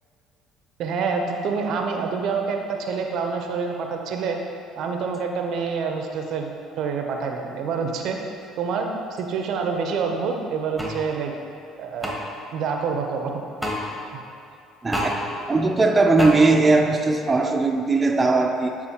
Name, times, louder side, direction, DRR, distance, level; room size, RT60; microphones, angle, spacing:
voice 1, 0.8-4.4 4.8-6.5 6.8-8.2 8.6-11.3 11.8-12.2 12.5-13.3, right 5 dB, 65° right, 3 dB, 0.6 m, -27 dB
sound 1, 10.8-11.0 12.0-12.2 13.6-13.8 14.9-15.1 16.2-16.3, equal, 5° left, 1.3 m, -27 dB
voice 2, 14.8-18.8, right 3 dB, 25° right, 3 dB, 0.5 m, -19 dB
9.6 x 4.1 x 2.9 m, 2.7 s
hypercardioid pair, 65°, 0 cm